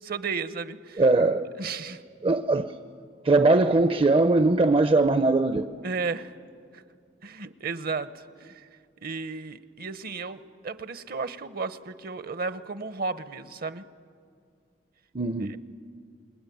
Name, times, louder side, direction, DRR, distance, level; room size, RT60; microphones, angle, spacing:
voice 1, 0.0-1.0 1.6-2.0 5.8-6.3 6.7-6.8 7.2-8.7 9.0-13.8 15.5-15.6, right 4 dB, 55° right, 0.9 m, -34 dB
voice 2, 1.0-1.5 2.2-2.7 3.2-5.7 15.1-15.5, right 2 dB, 30° right, 0.6 m, -21 dB
28.0 x 21.0 x 9.3 m
head